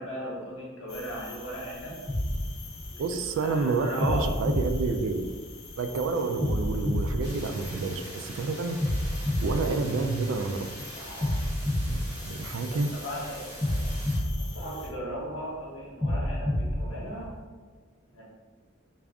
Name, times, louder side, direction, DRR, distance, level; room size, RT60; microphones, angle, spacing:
voice 1, 0.0-2.0 2.9-4.3 11.0-11.4 12.8-13.9 14.4-17.3 18.1-18.2, equal, 70° left, -4 dB, 1.1 m, -37 dB
sound 1, 0.9-14.9, left 3 dB, 85° left, 0.7 m, -46 dB
sound 2, 2.1-3.4 4.0-5.7 6.4-8.2 8.8-10.6 11.2-13.0 13.6-15.3 16.0-17.4, left 1 dB, 10° left, 0.6 m, -30 dB
voice 2, 3.0-5.3 5.8-8.8 9.4-10.9 11.9-12.9, right 3 dB, 65° right, 7 dB, 0.3 m, -29 dB
sound 3, 7.2-14.2, right 1 dB, 20° right, 1.0 m, -44 dB
3.4 x 2.4 x 3.6 m, 1.4 s
head